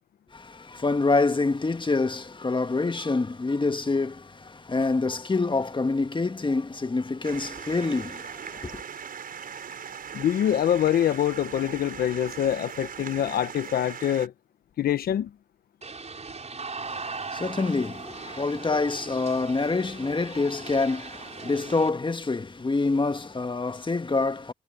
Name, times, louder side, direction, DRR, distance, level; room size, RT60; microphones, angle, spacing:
voice 1, 0.3-8.8 16.8-24.5, left 3 dB, 30° left, 1.7 m, -26 dB
sound 1, 7.2-14.3, right 7 dB, 70° right, 5.5 m, -39 dB
voice 2, 10.1-14.3 14.8-15.3, left 10 dB, 80° left, 1.1 m, -25 dB
sound 2, 15.8-21.9, right 4 dB, 45° right, 5.9 m, -39 dB
supercardioid pair, 40°, 15 cm